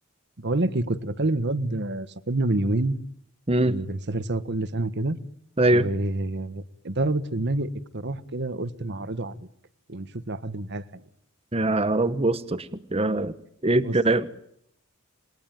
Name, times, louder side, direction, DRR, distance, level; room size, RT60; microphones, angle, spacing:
voice 1, 0.4-3.0 3.6-5.2 5.7-9.4 9.9-11.0 13.8-13.9, right 2 dB, 55° right, 15 dB, 1.5 m, -28 dB
voice 2, 3.5-3.8 5.6-5.9 11.5-13.4 13.6-14.3, right 2 dB, 30° right, 12 dB, 1.2 m, -22 dB
28.0 x 21.5 x 9.1 m, 0.72 s
head